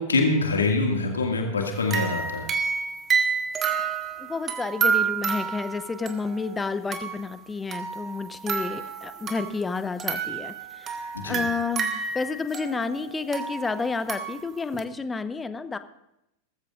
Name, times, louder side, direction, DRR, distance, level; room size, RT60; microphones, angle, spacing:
voice 1, 0.0-2.5 11.1-11.4, left 3 dB, 70° left, 2 dB, 2.1 m, -24 dB
sound 1, 1.8-7.3 7.7-9.7 10.0-14.8, right 6 dB, 25° right, 1.6 m, -29 dB
voice 2, 4.3-10.9 11.2-15.8, left 4 dB, 15° left, 12 dB, 0.8 m, -30 dB
20.5 x 14.0 x 2.5 m, 0.84 s
figure-of-eight pair, 90°, 0 cm